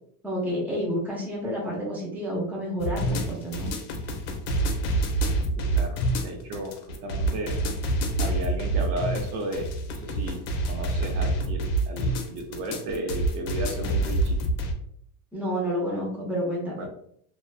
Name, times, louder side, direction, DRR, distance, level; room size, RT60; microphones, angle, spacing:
voice 1, 0.2-3.7 15.3-16.8, equal, 5° right, -4 dB, 0.6 m, -29 dB
sound 1, 2.8-14.7, right 2 dB, 75° left, 0.6 m, -27 dB
voice 2, 5.6-7.6 8.2-14.4 16.8-16.9, right 1 dB, 75° right, 3 dB, 0.7 m, -34 dB
2.4 x 2.2 x 2.3 m, 0.66 s
supercardioid pair, 125°, 44 cm